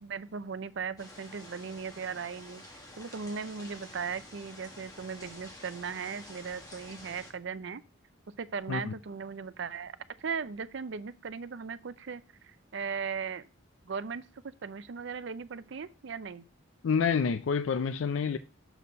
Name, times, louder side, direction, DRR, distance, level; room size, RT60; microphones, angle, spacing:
voice 1, 0.0-2.6 3.0-7.8 8.4-9.9 10.2-13.5 13.8-14.2 14.6-16.4, right 5 dB, 60° right, 0.5 m, -38 dB
sound 1, 1.0-7.3, left 1 dB, 20° left, 1.4 m, -49 dB
voice 2, 16.8-18.4, left 6 dB, 70° left, 0.4 m, -28 dB
7.0 x 4.3 x 4.0 m
head